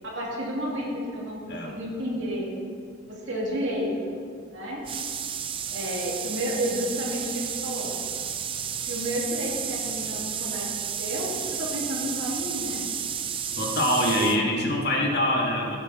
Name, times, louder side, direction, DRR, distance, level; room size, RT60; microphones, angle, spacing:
voice 1, 0.0-2.5 3.1-4.2 4.5-4.8 5.7-7.9 8.9-10.7 11.0-12.8 14.2-14.4, equal, 60° right, -4 dB, 2.9 m, -31 dB
sound 1, 4.8-14.4, right 8 dB, 25° right, 0.4 m, -32 dB
voice 2, 13.6-15.8, left 1 dB, 50° left, -1 dB, 2.0 m, -24 dB
16.0 x 9.2 x 4.2 m, 2.3 s
head